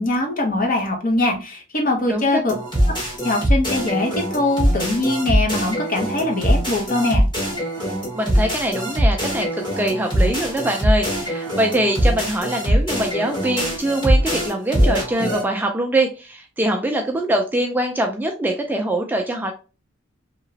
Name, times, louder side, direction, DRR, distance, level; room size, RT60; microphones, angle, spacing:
voice 1, 0.0-2.5 3.0-7.2, left 2 dB, 45° left, 1 dB, 0.9 m, -22 dB
voice 2, 2.1-2.4 8.1-19.5, right 1 dB, 10° right, 3 dB, 0.3 m, -23 dB
sound 1, 2.5-15.4, equal, 25° left, 1.4 m, -22 dB
2.9 x 2.9 x 2.7 m, 0.33 s
head